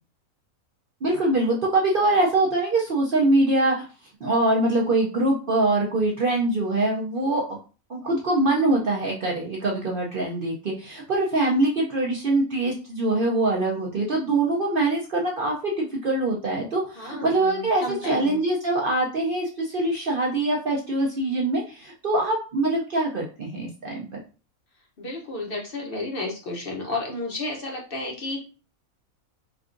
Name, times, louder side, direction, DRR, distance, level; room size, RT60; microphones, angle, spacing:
voice 1, 1.0-3.8 4.2-7.6 7.9-24.2, right 2 dB, 60° right, -2 dB, 0.6 m, -23 dB
voice 2, 16.9-18.4 25.0-28.4, left 2 dB, 50° left, 0 dB, 0.7 m, -32 dB
4.5 x 2.3 x 2.5 m, 0.34 s
omnidirectional pair, 1.6 m